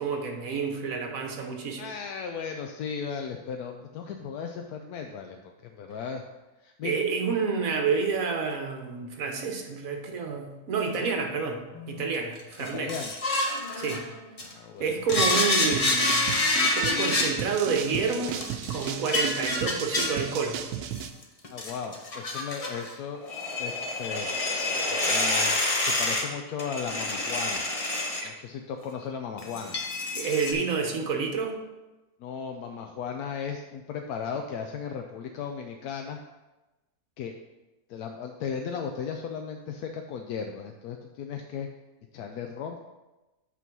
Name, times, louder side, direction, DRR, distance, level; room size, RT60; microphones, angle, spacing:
voice 1, 0.0-1.9 6.8-11.6 11.9-12.9 13.8-14.0 14.8-16.3 16.6-18.4 18.7-20.6 30.1-31.6, right 5 dB, 65° right, 4 dB, 1.4 m, -29 dB
voice 2, 1.8-6.2 6.6-7.0 11.0-11.1 12.7-13.1 14.4-15.0 21.5-23.2 23.6-23.7 24.0-24.3 25.1-27.7 28.2-29.8 32.2-36.2 37.2-37.3 37.9-41.7 42.1-42.9, left 6 dB, 85° left, 3 dB, 1.1 m, -36 dB
sound 1, 11.7-14.5 15.1-17.3 18.3-20.2 21.0-22.9 23.1-26.2 26.6-28.2 28.8-29.0 29.4-30.5, left 2 dB, 30° left, 0.8 m, -27 dB
sound 2, 15.2-21.1, right 9 dB, 85° right, 1.1 m, -35 dB
8.3 x 3.8 x 6.0 m, 1.1 s
omnidirectional pair, 1.6 m